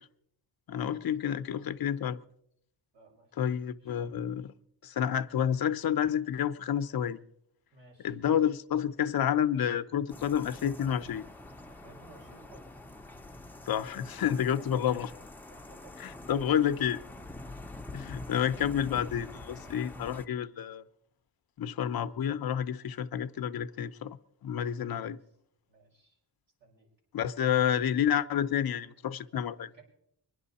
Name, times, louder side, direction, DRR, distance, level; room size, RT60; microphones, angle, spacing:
voice 1, 0.7-2.2 3.4-4.5 4.8-7.2 8.0-11.3 13.7-15.1 16.0-17.0 17.9-20.8 21.6-25.2 27.1-29.7, left 9 dB, 55° left, 0.7 m, -29 dB
voice 2, 2.9-4.3 7.7-8.2 11.7-12.8 14.2-14.8 15.5-16.1 24.9-25.4 25.7-26.2 26.6-26.9 29.6-29.8, right 3 dB, 80° right, 5.8 m, -58 dB
sound 1, 10.1-20.3, left 2 dB, 5° left, 0.7 m, -46 dB
24.0 x 11.0 x 4.2 m
wide cardioid pair, 120°, 43 cm